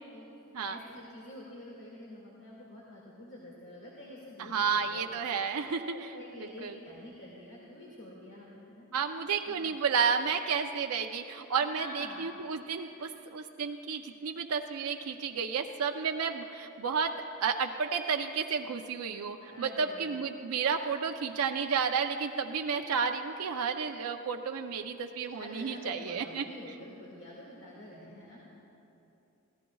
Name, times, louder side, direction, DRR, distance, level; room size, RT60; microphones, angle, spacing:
voice 1, 0.7-5.1 5.7-8.9 9.4-9.8 11.6-12.3 13.0-13.1 19.5-20.2 25.3-28.6, left 1 dB, 55° left, -4 dB, 2.1 m, -47 dB
voice 2, 4.4-6.1 6.4-6.8 8.9-26.4, right 6 dB, 85° right, 4 dB, 0.5 m, -32 dB
25.5 x 16.0 x 2.3 m, 2.9 s
head